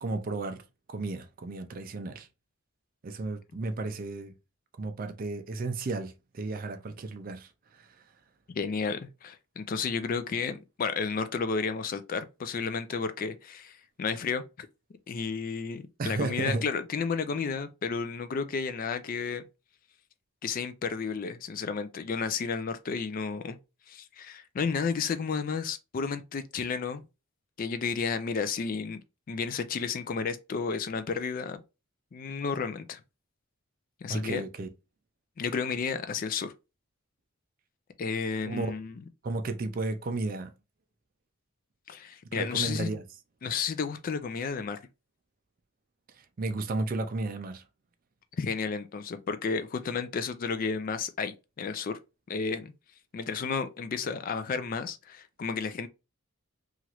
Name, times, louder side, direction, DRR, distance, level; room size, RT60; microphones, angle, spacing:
voice 1, 0.0-0.6 0.9-2.3 3.0-4.3 4.8-7.9 16.0-16.6 34.1-34.7 38.5-38.7 39.2-40.5 42.3-43.0 46.2-47.6, right 3 dB, 40° right, 0.4 m, -33 dB
voice 2, 8.5-14.7 15.1-19.4 20.4-23.6 23.9-27.0 27.6-29.0 29.3-31.6 32.1-33.0 34.0-34.4 35.4-36.5 38.0-39.0 41.9-43.0 43.4-44.8 48.4-52.0 52.3-52.7 53.1-55.9, left 5 dB, 40° left, 0.3 m, -32 dB
3.0 x 2.4 x 2.9 m
head